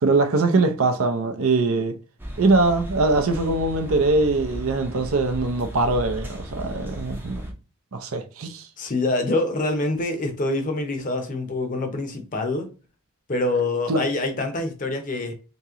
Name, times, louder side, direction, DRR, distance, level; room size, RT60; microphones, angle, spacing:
voice 1, 0.0-2.0 2.4-7.4 7.9-8.7 13.9-14.0, right 3 dB, 65° right, 0.6 m, -22 dB
sound 1, 2.2-7.5, equal, 10° right, 0.6 m, -35 dB
voice 2, 8.8-12.7 13.3-15.3, left 2 dB, 35° left, 0.7 m, -25 dB
3.0 x 2.8 x 3.5 m
head